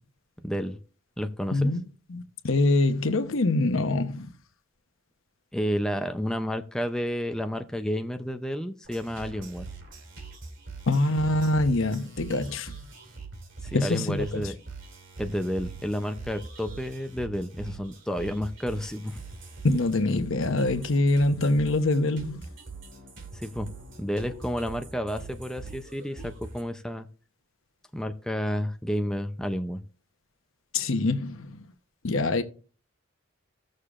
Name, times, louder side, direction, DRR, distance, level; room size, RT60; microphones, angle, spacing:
voice 1, 0.4-0.8 1.2-1.7 5.5-9.6 13.6-14.5 15.2-19.2 23.3-23.7 24.0-27.1 27.9-29.8, equal, 5° left, 0.5 m, -31 dB
voice 2, 1.5-1.8 2.1-4.3 10.9-12.7 13.7-14.5 19.6-22.5 30.7-31.6 32.0-32.4, left 2 dB, 75° left, 0.9 m, -24 dB
sound 1, 8.8-26.6, right 3 dB, 60° right, 2.6 m, -43 dB
17.0 x 6.5 x 2.5 m
head